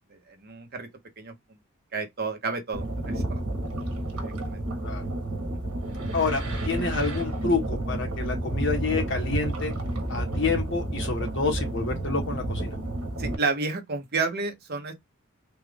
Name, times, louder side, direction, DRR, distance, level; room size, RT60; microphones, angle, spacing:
voice 1, 0.3-0.9 1.2-1.3 1.9-3.4 4.2-4.6 13.2-14.9, right 4 dB, 45° right, 0.9 m, -31 dB
sound 1, 2.7-13.3, right 1 dB, 90° right, 1.3 m, -30 dB
voice 2, 6.1-9.7 10.1-12.7, left 4 dB, 55° left, 1.3 m, -28 dB
3.5 x 2.5 x 3.3 m
head